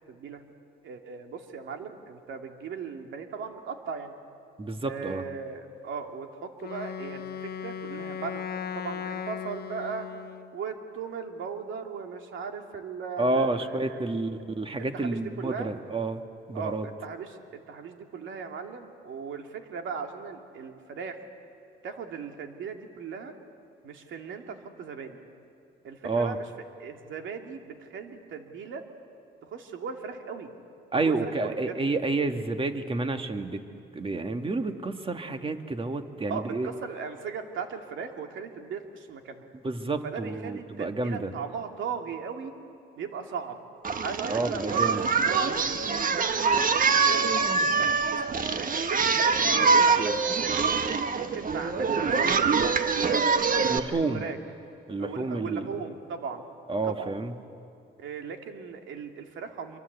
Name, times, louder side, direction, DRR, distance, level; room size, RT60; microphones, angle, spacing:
voice 1, 0.1-0.4 0.8-4.2 4.8-8.5 8.7-10.1 10.5-14.2 14.9-15.7 16.5-21.2 21.8-23.3 23.8-25.2 25.8-26.4 26.8-28.8 29.4-30.5 31.0-31.8 36.3-39.5 40.0-42.6 43.0-43.6 44.0-45.6 46.1-48.2 48.6-50.6 51.2-54.4 55.0-56.5 56.8-57.1 58.0-59.8, right 6 dB, 75° right, 4 dB, 2.6 m, -38 dB
voice 2, 4.6-5.2 13.2-16.2 16.5-16.9 26.0-26.4 30.9-33.6 33.9-36.7 39.6-41.3 44.3-45.0 53.7-54.3 54.9-55.7 56.7-57.3, right 3 dB, 25° right, 7 dB, 1.8 m, -29 dB
Wind instrument woodwind instrument, 6.6-10.6, left 7 dB, 50° left, 0.9 m, -37 dB
Singing, 43.9-53.8, right 5 dB, 45° right, 1.5 m, -24 dB
27.0 x 23.5 x 8.2 m, 2.7 s
cardioid pair, 90°, 20 cm